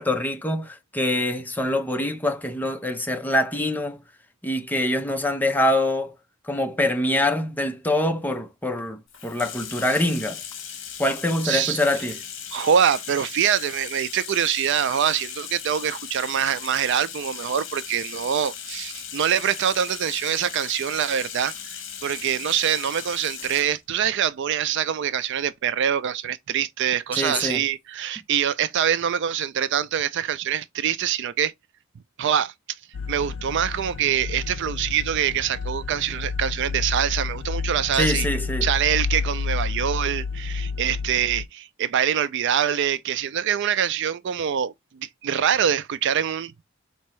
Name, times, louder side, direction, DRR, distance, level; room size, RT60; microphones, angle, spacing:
voice 1, 0.0-4.0 4.4-6.1 6.5-10.4 11.0-12.2 27.1-27.6 37.9-38.7, left 1 dB, 10° left, 0.6 m, -24 dB
Bathtub (filling or washing), 9.1-23.8, left 8 dB, 65° left, 1.0 m, -37 dB
voice 2, 11.4-11.8 12.5-31.5 32.2-32.5 33.1-38.3 38.6-46.6, right 9 dB, 60° right, 0.4 m, -24 dB
sound 1, 32.9-41.5, left 5 dB, 85° left, 0.4 m, -30 dB
4.4 x 2.8 x 3.1 m
head